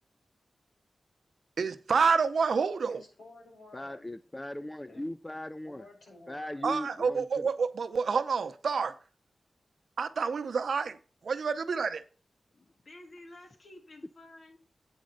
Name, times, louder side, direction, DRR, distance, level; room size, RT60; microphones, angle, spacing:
voice 1, 1.6-3.0 6.6-8.9 10.0-11.0 11.2-12.0, right 5 dB, 75° right, 0.7 m, -28 dB
voice 2, 2.9-4.1 4.9-5.0 5.7-6.7, left 2 dB, 75° left, 5.3 m, -52 dB
voice 3, 3.7-5.9 6.3-7.5, left 1 dB, 15° left, 0.4 m, -39 dB
voice 4, 12.5-14.6, left 1 dB, 50° left, 2.0 m, -52 dB
8.6 x 5.1 x 6.5 m
wide cardioid pair, 105°, 0 cm